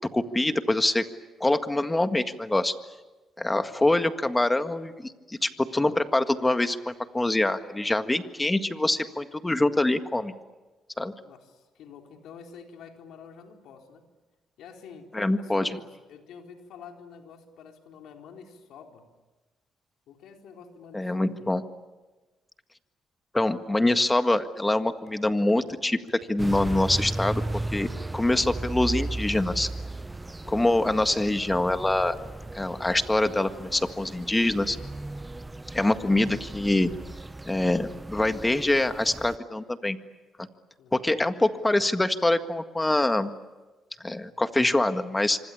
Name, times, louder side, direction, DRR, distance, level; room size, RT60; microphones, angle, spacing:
voice 1, 0.1-1.0 1.4-2.7 3.4-10.3 11.0-11.1 15.1-15.8 20.9-21.6 23.3-27.4 27.7-29.7 30.5-32.2 32.5-34.8 35.7-36.9 37.5-40.0 40.4-40.5 40.9-43.3 44.0-45.4, left 2 dB, 15° left, 8 dB, 1.7 m, -25 dB
voice 2, 11.2-14.0 14.6-19.1 20.1-21.5 40.8-41.2, left 6 dB, 80° left, 3 dB, 4.0 m, -48 dB
sound 1, 25.1-32.6, left 5 dB, 65° left, 5.6 m, -54 dB
sound 2, 26.4-39.4, right 2 dB, 15° right, 0.8 m, -36 dB
26.0 x 25.5 x 8.6 m, 1.2 s
cardioid pair, 90°, 0 cm